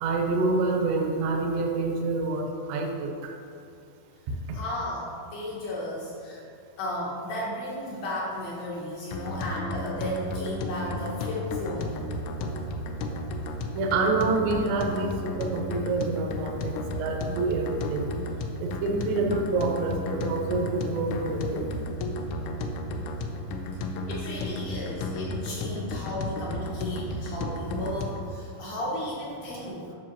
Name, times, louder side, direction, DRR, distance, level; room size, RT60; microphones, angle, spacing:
voice 1, 0.0-3.3 13.7-15.1 15.4-18.1 18.6-21.6, right 3 dB, 90° right, 1 dB, 2.5 m, -27 dB
voice 2, 4.5-6.4 6.8-11.9 24.1-29.9, left 1 dB, 75° left, -5 dB, 2.4 m, -34 dB
sound 1, 9.1-28.3, left 2 dB, 90° left, 2.7 m, -33 dB
10.5 x 5.9 x 2.9 m, 2.5 s
omnidirectional pair, 5.9 m